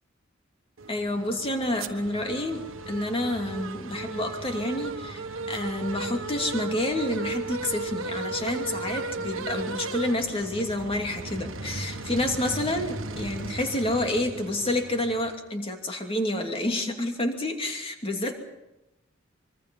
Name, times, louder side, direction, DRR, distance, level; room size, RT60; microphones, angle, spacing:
sound 1, 0.8-15.4, right 3 dB, 90° right, 1.4 m, -36 dB
voice 1, 0.9-18.3, left 1 dB, 30° left, 3 dB, 2.7 m, -29 dB
25.0 x 23.5 x 5.4 m, 0.95 s
head